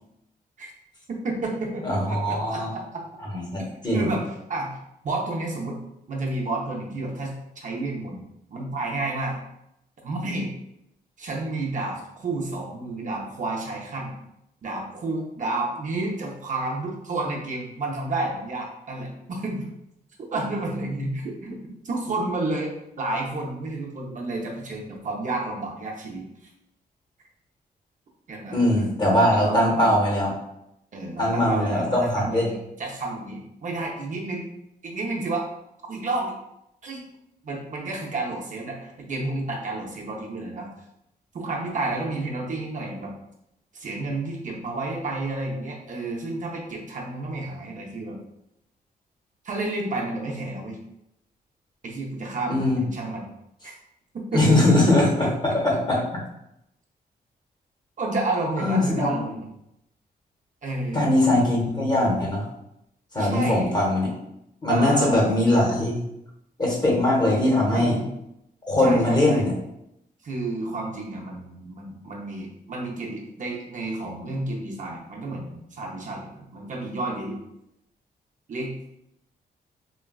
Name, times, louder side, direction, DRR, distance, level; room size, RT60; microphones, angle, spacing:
voice 1, 1.1-2.8 3.9-4.8 5.0-5.8 6.1-8.2 8.5-9.4 10.0-10.5 11.2-14.1 14.6-19.7 20.3-26.3 28.3-28.9 29.3-30.0 30.9-34.4 34.8-35.5 35.9-36.3 36.8-37.0 37.4-40.7 41.3-43.1 43.7-48.2 49.4-50.8 51.8-53.2 53.6-53.7 54.1-54.8 55.0-55.3 58.0-59.5 60.6-61.4 63.2-63.7 64.7-65.3 67.7-68.1 68.8-69.5 70.2-77.4 78.5-78.9, right 2 dB, 50° right, -2 dB, 0.6 m, -31 dB
voice 2, 1.8-2.7 3.3-4.1 28.5-30.3 31.2-32.5 52.5-52.8 54.3-56.0 58.6-59.2 60.9-62.4 63.1-64.1 64.6-66.0 66.6-68.0 68.7-69.5, left 1 dB, 25° left, -2 dB, 1.0 m, -21 dB
3.8 x 2.3 x 2.3 m, 0.82 s
cardioid pair, 90°, 17 cm